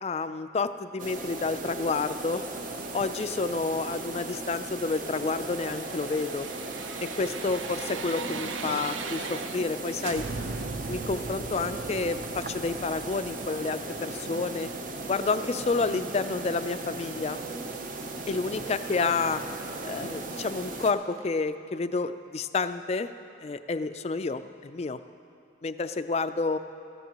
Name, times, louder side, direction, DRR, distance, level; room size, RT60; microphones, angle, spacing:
voice 1, 0.0-2.4 2.9-6.5 7.0-10.3 10.9-14.7 15.1-17.4 18.3-19.4 19.8-23.1 23.4-25.0 25.6-26.6, left 4 dB, 35° left, 11 dB, 0.3 m, -29 dB
sound 1, 1.0-20.9, right 2 dB, 45° right, 0.7 m, -37 dB
sound 2, 1.8-13.8, right 4 dB, 65° right, 3.8 m, -51 dB
sound 3, 5.0-9.7 10.0-14.9 15.2-15.3, right 4 dB, 85° right, 0.6 m, -40 dB
19.0 x 14.5 x 3.0 m, 2.5 s
head